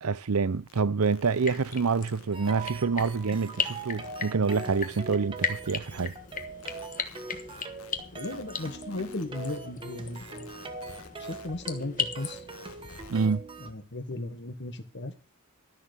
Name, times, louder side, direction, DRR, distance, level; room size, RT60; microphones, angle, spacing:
voice 1, 0.0-6.1 13.1-13.5, right 5 dB, 85° right, 0.6 m, -27 dB
sound 1, 0.7-2.7 3.0-11.5 11.8-13.3, left 5 dB, 75° left, 1.8 m, -52 dB
sound 2, 1.3-13.1, left 6 dB, 35° left, 1.3 m, -38 dB
sound 3, 2.3-13.7, right 3 dB, 25° right, 1.5 m, -42 dB
voice 2, 8.1-10.5 11.2-12.4 13.6-15.1, left 2 dB, 50° left, 1.5 m, -36 dB
13.0 x 6.6 x 8.2 m
head